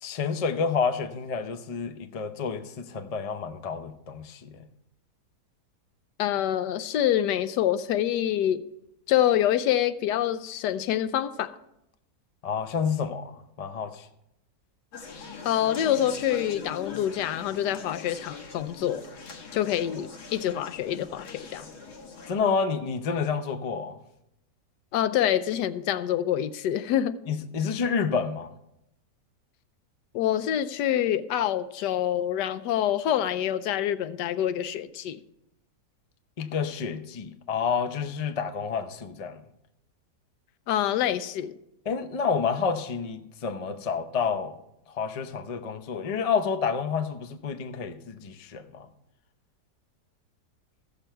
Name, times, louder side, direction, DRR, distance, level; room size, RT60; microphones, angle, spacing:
voice 1, 0.0-4.6 12.4-14.1 22.3-24.0 27.3-28.5 36.4-39.4 41.9-44.6 44.9-48.9, left 5 dB, 55° left, 0.4 m, -29 dB
voice 2, 6.2-8.6 9.1-11.6 15.4-19.0 19.5-21.6 24.9-27.2 30.1-35.2 40.7-41.5, left 11 dB, 90° left, 1.2 m, -26 dB
Conversation, 14.9-22.3, left 4 dB, 70° left, 1.9 m, -42 dB
15.0 x 6.9 x 4.5 m
omnidirectional pair, 1.8 m